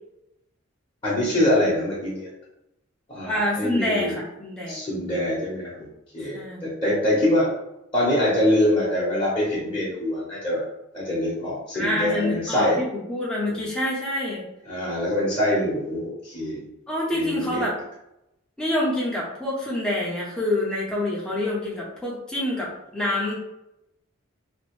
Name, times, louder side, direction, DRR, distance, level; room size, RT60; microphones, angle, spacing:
voice 1, 1.0-2.3 3.1-4.2 4.7-5.9 6.1-7.5 7.9-10.6 10.9-12.8 13.6-13.7 14.7-16.6 17.1-17.6, left 1 dB, 20° left, -8 dB, 1.0 m, -24 dB
voice 2, 3.2-4.8 6.2-6.6 11.7-14.4 16.9-17.8 18.6-23.4, left 1 dB, 5° left, -6 dB, 0.7 m, -27 dB
2.9 x 2.6 x 3.1 m, 0.86 s
head